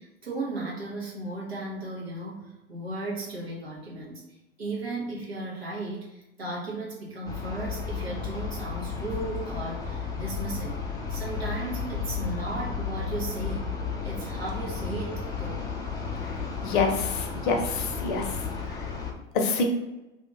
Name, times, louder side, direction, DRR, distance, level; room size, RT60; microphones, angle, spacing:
voice 1, 0.0-4.2 4.6-10.8 11.1-13.7 14.0-15.6, right 2 dB, 80° right, -5 dB, 1.3 m, -35 dB
sound 1, 7.3-19.1, left 5 dB, 10° left, 0.4 m, -33 dB
voice 2, 16.2-18.9 19.3-19.6, left 4 dB, 55° left, 3 dB, 0.7 m, -28 dB
2.8 x 2.7 x 3.6 m, 0.98 s
figure-of-eight pair, 85°, 30 cm